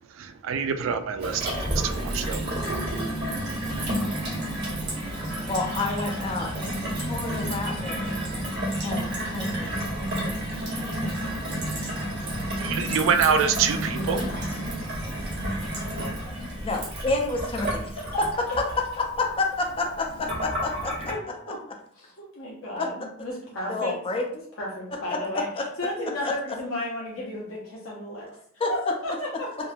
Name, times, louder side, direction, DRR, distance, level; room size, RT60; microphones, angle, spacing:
voice 1, 0.2-2.5 12.6-14.3, right 6 dB, 75° right, 8 dB, 0.3 m, -25 dB
Gurgling / Water tap faucet / Sink (filling or washing), 1.2-21.1, right 1 dB, 60° right, 0.9 m, -30 dB
voice 2, 5.5-8.0 8.8-10.5 13.9-14.4 16.6-18.3 19.0-21.1 22.8-22.9 23.7-24.3 25.3-25.7 26.2-26.3 28.6-28.7, left 3 dB, 30° left, 2 dB, 0.4 m, -30 dB
voice 3, 21.1-21.6 22.0-24.0 24.3-29.5, left 1 dB, 85° left, -5 dB, 0.6 m, -33 dB
2.9 x 2.1 x 2.3 m, 0.62 s
head